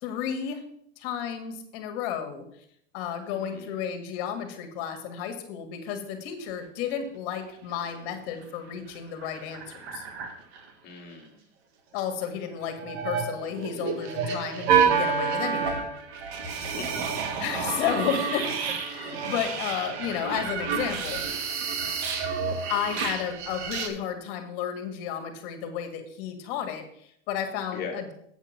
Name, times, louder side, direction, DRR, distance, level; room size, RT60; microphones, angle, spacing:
voice 1, 0.0-0.6 1.0-2.4 2.9-10.1 11.9-15.8 17.4-18.6 18.8-21.2 22.7-28.1, left 8 dB, 45° left, 6 dB, 1.9 m, -32 dB
voice 2, 3.3-3.8 10.8-11.4 14.3-14.5 16.5-17.1 27.7-28.0, left 5 dB, 25° left, 1 dB, 2.2 m, -40 dB
sound 1, 7.7-8.2 8.4-8.5 8.8-10.6 12.6-23.9, right 6 dB, 55° right, 1.8 m, -29 dB
8.2 x 6.0 x 5.9 m, 0.71 s
supercardioid pair, 150°, 37 cm